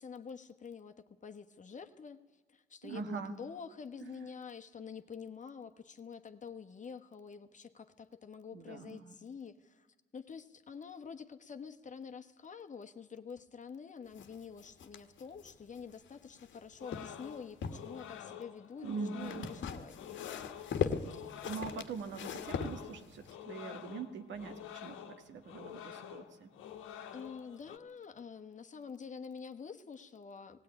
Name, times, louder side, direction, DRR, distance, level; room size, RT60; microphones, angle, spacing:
voice 1, 0.0-2.2 2.5-9.9 10.1-20.3 20.7-21.4 27.1-30.6, left 6 dB, 40° left, 8 dB, 1.3 m, -47 dB
voice 2, 2.8-3.4 4.0-4.3 8.5-9.2 18.8-19.5 21.4-26.5, right 5 dB, 70° right, 8 dB, 1.7 m, -43 dB
sound 1, 14.2-16.6 16.9-17.9 19.2-23.3, left 7 dB, 70° left, 1.4 m, -39 dB
sound 2, 16.8-27.8, left 9 dB, 85° left, 1.4 m, -48 dB
18.0 x 16.5 x 9.8 m, 1.3 s
cardioid pair, 90°, 20 cm